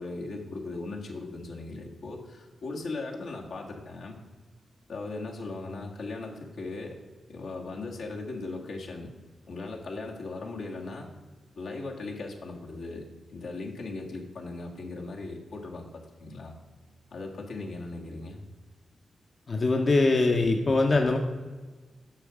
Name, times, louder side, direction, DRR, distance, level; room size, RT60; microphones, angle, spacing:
voice 1, 0.0-4.2 4.9-7.0 7.3-9.1 9.5-11.1 11.6-16.5 17.1-18.4, left 3 dB, 80° left, -1 dB, 1.7 m, -38 dB
voice 2, 19.5-21.2, left 3 dB, 50° left, 3 dB, 0.8 m, -22 dB
8.9 x 6.3 x 4.8 m, 1.3 s
cardioid pair, 60°, 0 cm